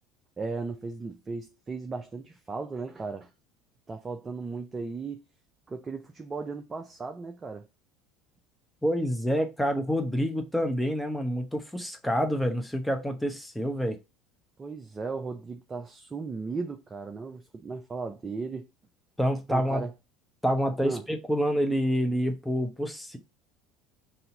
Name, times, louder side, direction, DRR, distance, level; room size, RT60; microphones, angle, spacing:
voice 1, 0.4-3.3 3.9-5.2 5.7-7.7 14.6-18.6 19.5-19.9 20.8-21.0, right 4 dB, 25° right, 0.6 m, -36 dB
voice 2, 8.8-14.0 19.2-19.8 20.4-23.2, equal, 5° left, 0.9 m, -27 dB
4.2 x 2.7 x 3.9 m
hypercardioid pair, 75°, 0 cm